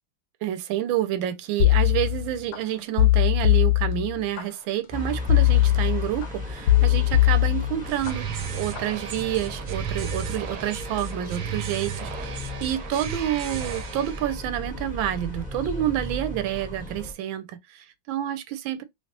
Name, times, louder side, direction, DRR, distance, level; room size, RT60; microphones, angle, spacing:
voice 1, 0.4-18.8, right 12 dB, 85° right, 1.3 m, -29 dB
sound 1, 1.6-2.6 3.0-4.4 5.3-6.3 6.7-8.1 8.5-8.9, left 15 dB, 70° left, 0.9 m, -20 dB
sound 2, 4.9-17.1, left 1 dB, 10° right, 0.4 m, -35 dB
sound 3, 7.8-14.3, right 9 dB, 70° right, 1.1 m, -35 dB
3.2 x 2.9 x 2.8 m
omnidirectional pair, 2.1 m